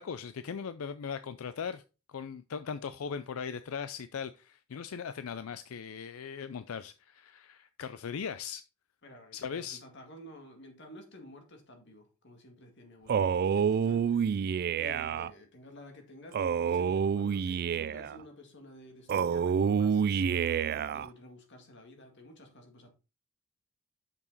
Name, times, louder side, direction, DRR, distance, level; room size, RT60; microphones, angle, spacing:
voice 1, 0.0-1.8 2.1-8.6 9.3-9.8, left 6 dB, 90° left, 0.4 m, -39 dB
voice 2, 9.0-14.4 14.7-22.9, left 1 dB, 60° left, 2.1 m, -52 dB
Male speech man speaking, 13.1-15.3 16.3-18.2 19.1-21.1, right 7 dB, 50° right, 0.3 m, -28 dB
7.0 x 5.7 x 4.0 m
head